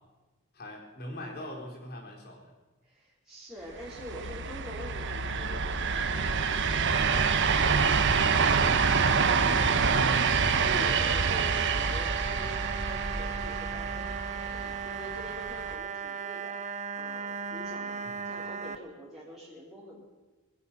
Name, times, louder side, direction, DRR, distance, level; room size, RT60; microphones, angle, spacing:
voice 1, 0.5-2.5 18.0-18.4, left 1 dB, 50° left, -1 dB, 4.3 m, -42 dB
voice 2, 2.8-16.6 16.9-20.1, equal, ahead, -8 dB, 4.0 m, -46 dB
sound 1, 3.8-15.7, right 5 dB, 60° right, 1.1 m, -27 dB
sound 2, 6.9-18.8, right 6 dB, 35° right, 0.8 m, -37 dB
23.5 x 9.9 x 6.1 m, 1.2 s
head